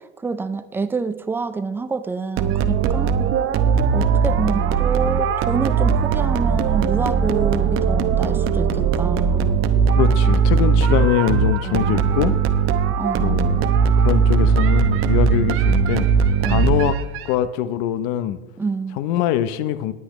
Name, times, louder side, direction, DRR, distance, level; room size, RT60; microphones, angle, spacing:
voice 1, 0.0-3.2 3.9-9.6 11.6-12.1 13.0-13.6 16.4-16.8 18.6-19.0, right 4 dB, 5° right, 12 dB, 0.3 m, -27 dB
sound 1, 2.4-17.3, right 6 dB, 35° right, 0.8 m, -19 dB
voice 2, 10.0-12.3 13.2-17.0 17.2-18.4 19.0-19.9, left 12 dB, 55° left, 12 dB, 0.8 m, -23 dB
19.0 x 8.0 x 3.1 m, 1.1 s
supercardioid pair, 130°, 36 cm